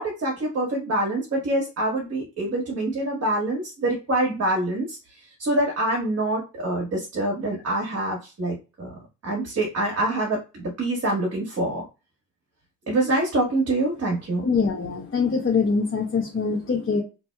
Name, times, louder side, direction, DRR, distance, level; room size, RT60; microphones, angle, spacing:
voice 1, 0.0-8.9 9.2-11.8 12.9-14.5, right 1 dB, 45° right, -2 dB, 1.4 m, -25 dB
voice 2, 14.4-17.0, left 5 dB, 35° left, -1 dB, 1.0 m, -23 dB
2.9 x 2.7 x 2.3 m, 0.30 s
supercardioid pair, 60°, 35 cm